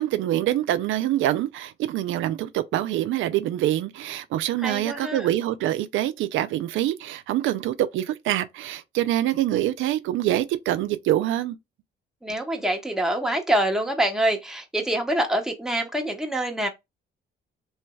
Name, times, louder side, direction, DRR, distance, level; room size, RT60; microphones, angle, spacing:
voice 1, 0.0-11.6, right 13 dB, 85° right, 0.4 m, -25 dB
voice 2, 4.6-5.3 12.2-16.7, right 1 dB, ahead, 0.9 m, -25 dB
3.2 x 3.0 x 2.3 m
cardioid pair, 90°, 20 cm